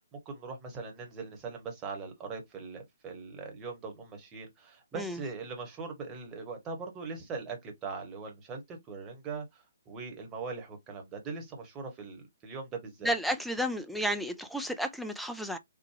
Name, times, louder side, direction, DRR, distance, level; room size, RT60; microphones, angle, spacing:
voice 1, 0.1-13.1, right 4 dB, 20° right, 1.1 m, -41 dB
voice 2, 13.0-15.6, equal, ahead, 0.4 m, -32 dB
3.5 x 2.2 x 3.2 m
figure-of-eight pair, 130°, 0 cm